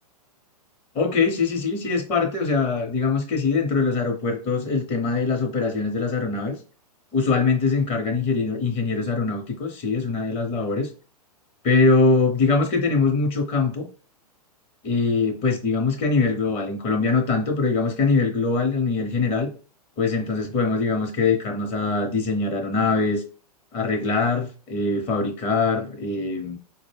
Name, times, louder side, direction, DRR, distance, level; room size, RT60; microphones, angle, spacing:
voice 1, 0.9-6.6 7.1-10.9 11.6-13.9 14.8-19.5 20.0-23.2 23.7-26.6, left 4 dB, 30° left, 0.8 m, -22 dB
3.9 x 2.1 x 3.4 m
hypercardioid pair, 125°, 21 cm